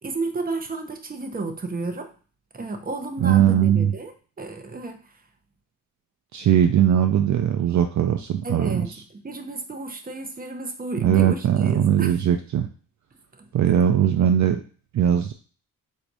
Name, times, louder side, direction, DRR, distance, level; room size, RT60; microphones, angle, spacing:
voice 1, 0.0-2.1 2.5-5.0 8.4-12.2 13.4-13.5, right 3 dB, 25° right, 5 dB, 0.8 m, -32 dB
voice 2, 3.2-3.9 6.3-9.0 11.0-12.7 13.5-14.6 14.9-15.3, right 10 dB, 60° right, 6 dB, 0.5 m, -20 dB
4.1 x 2.7 x 4.7 m, 0.39 s
cardioid pair, 95°, 34 cm